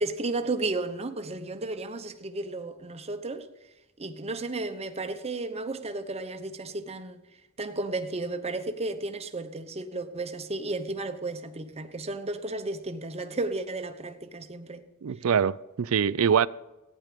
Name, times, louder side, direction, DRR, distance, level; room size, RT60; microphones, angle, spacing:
voice 1, 0.0-3.5 4.0-7.2 7.6-14.8, right 2 dB, 30° right, 0.9 m, -33 dB
voice 2, 15.0-16.5, right 7 dB, 70° right, 0.4 m, -24 dB
15.0 x 9.7 x 5.1 m
head